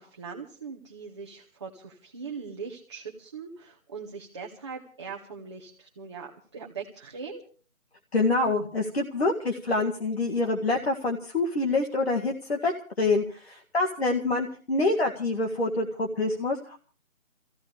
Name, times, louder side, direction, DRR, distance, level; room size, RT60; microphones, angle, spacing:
voice 1, 0.0-7.4, right 5 dB, 20° right, -1 dB, 1.1 m, -41 dB
voice 2, 8.1-16.8, left 2 dB, 45° left, 0 dB, 1.9 m, -26 dB
24.5 x 15.5 x 3.5 m, 0.38 s
figure-of-eight pair, 155°, 41 cm